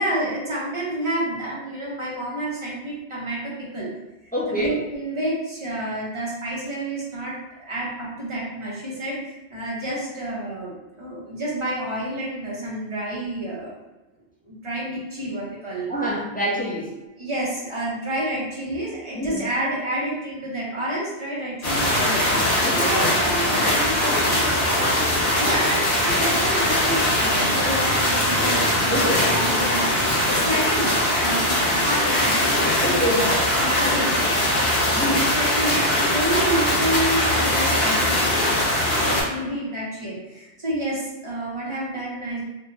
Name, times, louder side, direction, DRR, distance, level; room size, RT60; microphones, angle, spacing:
voice 1, 0.0-3.9 4.5-13.7 14.4-15.9 17.2-22.4 22.7-24.7 25.1-30.9 31.2-31.4 31.7-34.4 34.9-42.4, right 1 dB, 30° right, -6 dB, 0.8 m, -29 dB
voice 2, 4.3-4.8 15.9-16.9 19.1-19.4 22.6-22.9 28.9-29.4 32.8-33.3 35.0-35.3, equal, 15° left, -6 dB, 0.4 m, -25 dB
sound 1, 21.6-39.2, left 1 dB, 55° left, 1.0 m, -21 dB
2.5 x 2.2 x 3.2 m, 1.1 s
omnidirectional pair, 1.1 m